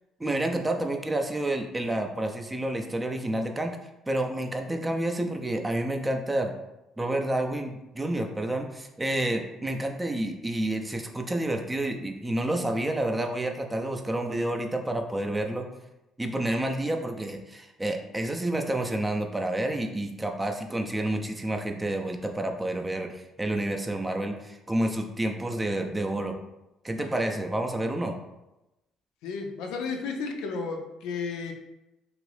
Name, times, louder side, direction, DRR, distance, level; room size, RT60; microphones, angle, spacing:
voice 1, 0.2-3.8 4.1-6.5 7.0-15.7 16.2-26.3 26.8-28.2, right 1 dB, 15° right, 4 dB, 0.5 m, -29 dB
voice 2, 29.2-31.5, left 4 dB, 75° left, 3 dB, 0.4 m, -33 dB
2.9 x 2.5 x 3.2 m, 0.94 s
hypercardioid pair, 55°, 0 cm